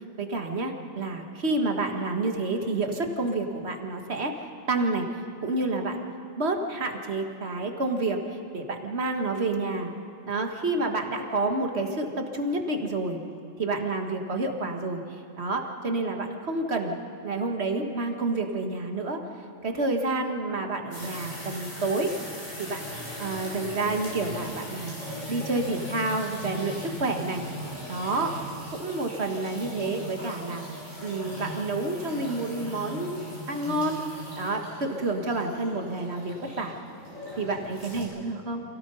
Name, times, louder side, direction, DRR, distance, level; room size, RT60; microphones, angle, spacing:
voice 1, 0.2-4.3 4.7-5.1 5.4-6.0 6.4-8.2 8.5-9.9 10.3-13.2 13.6-15.0 15.4-17.0 17.2-19.2 19.6-22.1 22.6-22.8 23.2-24.9 25.3-27.4 27.9-28.4 28.7-30.6 31.0-34.0 34.4-36.7 37.4-38.6, right 2 dB, 55° right, 4 dB, 1.9 m, -29 dB
sound 1, 20.9-38.0, equal, 85° left, 7.5 m, -39 dB
27.5 x 17.0 x 5.6 m, 2.9 s
omnidirectional pair, 1.3 m